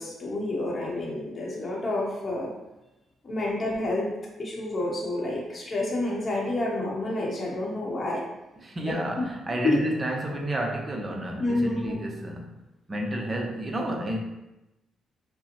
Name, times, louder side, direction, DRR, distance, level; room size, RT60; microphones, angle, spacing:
voice 1, 0.0-2.5 3.2-8.2 8.8-9.2 9.6-9.8 11.4-12.0, left 1 dB, 40° left, -3 dB, 0.8 m, -29 dB
voice 2, 8.6-12.6 12.9-14.2, right 1 dB, 30° right, 1 dB, 0.7 m, -31 dB
5.1 x 2.0 x 2.9 m, 0.96 s
cardioid pair, 90°, 0 cm